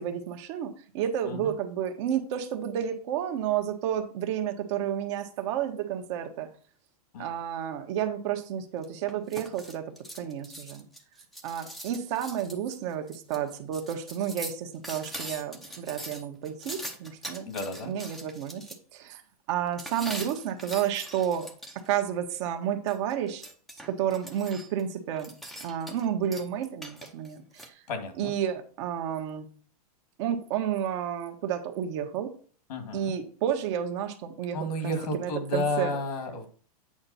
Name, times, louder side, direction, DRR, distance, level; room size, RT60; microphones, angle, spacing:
voice 1, 0.0-6.5 7.2-9.8 10.2-10.8 11.4-17.5 17.8-18.6 18.9-19.2 19.5-21.5 21.7-23.4 23.9-25.3 25.6-27.7 28.2-29.5 30.2-32.3 32.9-35.9, right 9 dB, 50° right, 5 dB, 1.3 m, -31 dB
sound 1, 8.8-18.8 19.8-22.0 22.9-24.8 25.2-26.1 26.3-27.7, right 1 dB, ahead, 0.8 m, -42 dB
voice 2, 17.4-17.9 27.9-28.3 32.7-33.1 34.5-36.5, left 1 dB, 80° left, 6 dB, 2.4 m, -32 dB
8.8 x 5.2 x 4.3 m, 0.43 s
supercardioid pair, 155°, 20 cm